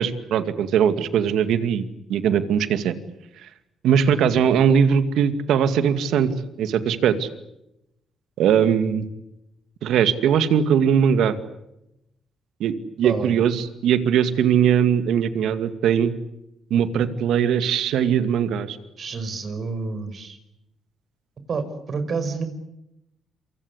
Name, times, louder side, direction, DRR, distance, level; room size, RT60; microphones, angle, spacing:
voice 1, 0.0-1.8 2.1-2.9 3.8-6.3 6.6-7.3 8.4-9.1 9.8-11.4 12.6-16.1 16.7-18.8, right 8 dB, 80° right, 10 dB, 2.3 m, -20 dB
voice 2, 13.0-13.4 14.3-14.4 19.0-20.4 21.5-22.4, right 4 dB, 50° right, 10 dB, 5.2 m, -29 dB
27.5 x 25.0 x 8.2 m, 0.85 s
cardioid pair, 90°, 0 cm